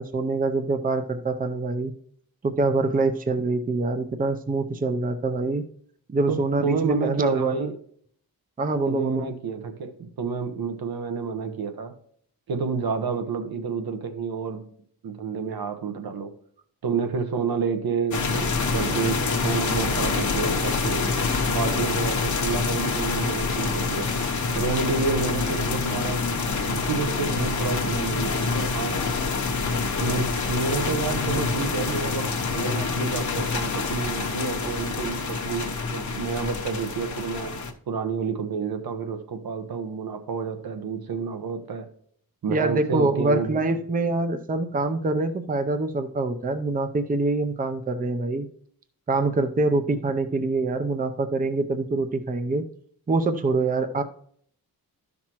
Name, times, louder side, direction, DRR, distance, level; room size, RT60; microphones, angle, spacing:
voice 1, 0.0-1.9 2.4-5.6 6.1-7.7 8.6-9.3 42.5-48.5 49.1-52.6 53.1-54.0, right 3 dB, 25° right, 9 dB, 0.6 m, -25 dB
voice 2, 6.3-7.7 8.9-11.9 12.5-14.6 15.0-16.3 16.8-21.0 21.5-24.1 24.5-26.2 26.7-29.0 30.0-41.9 42.4-43.6, right 5 dB, 75° right, 7 dB, 1.1 m, -29 dB
sound 1, 18.1-37.7, left 4 dB, 50° left, 1.0 m, -26 dB
12.5 x 5.9 x 3.0 m, 0.63 s
wide cardioid pair, 105°, 37 cm